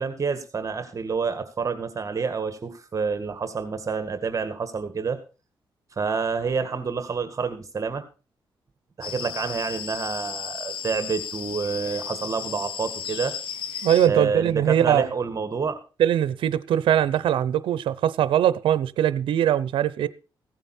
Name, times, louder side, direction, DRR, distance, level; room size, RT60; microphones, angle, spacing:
voice 1, 0.0-5.2 6.0-8.0 9.0-13.3 14.1-15.8, right 5 dB, 40° right, 1.8 m, -28 dB
sound 1, 9.0-14.1, left 8 dB, 85° left, 1.1 m, -34 dB
voice 2, 13.8-15.1 16.0-20.1, right 10 dB, 85° right, 0.7 m, -21 dB
15.5 x 9.0 x 4.4 m
cardioid pair, 90°, 9 cm